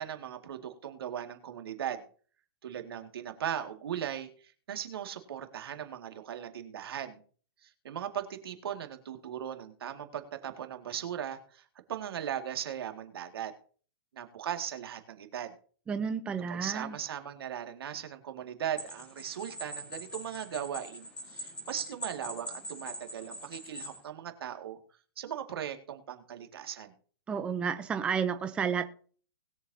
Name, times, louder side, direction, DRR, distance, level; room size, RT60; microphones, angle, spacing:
voice 1, 0.0-2.0 2.6-7.2 7.6-11.6 11.9-13.5 14.1-15.5 16.5-24.8 25.2-26.9, right 9 dB, 75° right, 5 dB, 2.1 m, -38 dB
voice 2, 15.9-16.9 27.3-28.9, right 6 dB, 10° right, 9 dB, 0.5 m, -31 dB
sound 1, 18.8-24.0, equal, 10° left, 4.6 m, -43 dB
20.5 x 7.2 x 2.8 m, 0.43 s
hypercardioid pair, 160°, 13 cm